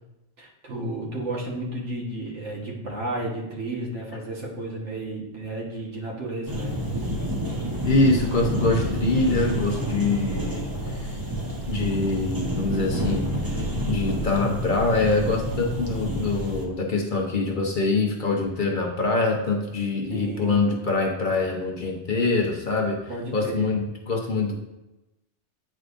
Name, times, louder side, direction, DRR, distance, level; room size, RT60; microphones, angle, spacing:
voice 1, 0.4-6.8 20.1-20.6 23.1-23.7, right 1 dB, 70° right, -3 dB, 1.7 m, -32 dB
sound 1, 6.5-16.6, equal, 20° right, 0.7 m, -29 dB
voice 2, 7.8-11.2 11.7-13.6 13.9-23.0 23.3-24.6, left 3 dB, 45° left, 0 dB, 0.9 m, -24 dB
8.8 x 4.8 x 2.5 m, 0.99 s
omnidirectional pair, 1.2 m